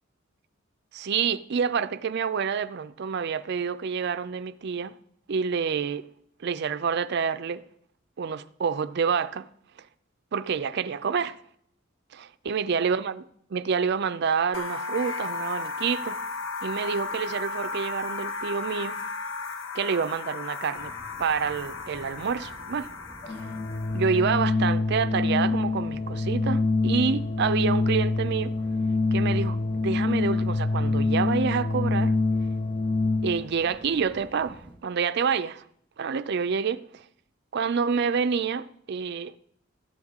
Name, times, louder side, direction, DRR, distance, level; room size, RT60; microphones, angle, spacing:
voice 1, 0.9-4.9 5.3-6.0 6.4-7.6 8.2-9.5 10.3-11.4 12.1-13.2 13.5-16.2 16.6-19.0 19.7-20.9 21.2-22.9 23.9-28.5 29.1-32.1 33.2-35.6 36.0-37.0 37.5-39.4, right 6 dB, 55° right, 0.4 m, -28 dB
sound 1, 14.5-24.3, left 4 dB, 65° left, 1.0 m, -35 dB
sound 2, 20.7-34.7, right 1 dB, 10° right, 3.2 m, -49 dB
Organ, 23.2-33.6, left 3 dB, 25° left, 0.4 m, -25 dB
14.0 x 9.5 x 3.6 m
head